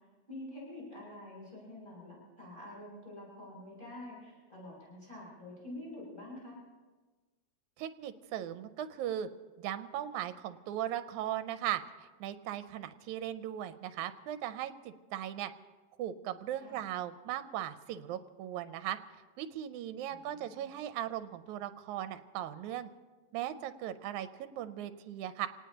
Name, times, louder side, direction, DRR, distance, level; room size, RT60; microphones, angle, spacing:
voice 1, 0.3-6.6 16.5-16.8 20.1-20.7, left 1 dB, 15° left, -5 dB, 7.2 m, -47 dB
voice 2, 7.8-9.3 9.6-15.5 16.0-19.0 19.4-22.9 23.3-25.5, right 11 dB, 90° right, 10 dB, 2.1 m, -38 dB
26.5 x 18.5 x 2.9 m, 1.3 s
omnidirectional pair, 3.4 m